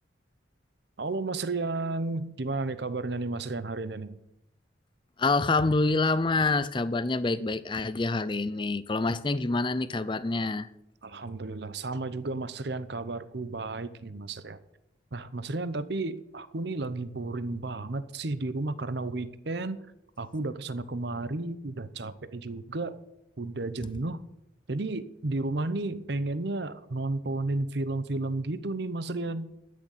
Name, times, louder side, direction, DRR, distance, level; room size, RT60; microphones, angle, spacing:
voice 1, 1.0-4.2 11.0-14.6 15.1-19.8 20.2-22.9 23.4-24.2 24.7-29.5, right 2 dB, 55° right, 0.8 m, -32 dB
voice 2, 5.2-10.7, left 3 dB, 25° left, 0.5 m, -26 dB
12.0 x 6.5 x 9.2 m
head